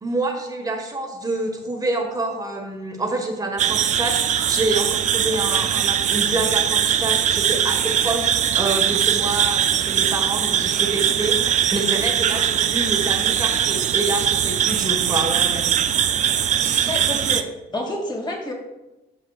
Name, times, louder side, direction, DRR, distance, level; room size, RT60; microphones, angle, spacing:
voice 1, 0.0-16.0, right 2 dB, 20° right, 2 dB, 1.5 m, -27 dB
sound 1, 3.6-17.4, right 9 dB, 45° right, 0.5 m, -21 dB
voice 2, 16.9-17.5 17.7-18.5, left 1 dB, 25° left, 0 dB, 2.3 m, -28 dB
14.5 x 5.7 x 2.4 m, 1.0 s
cardioid pair, 110°, 17 cm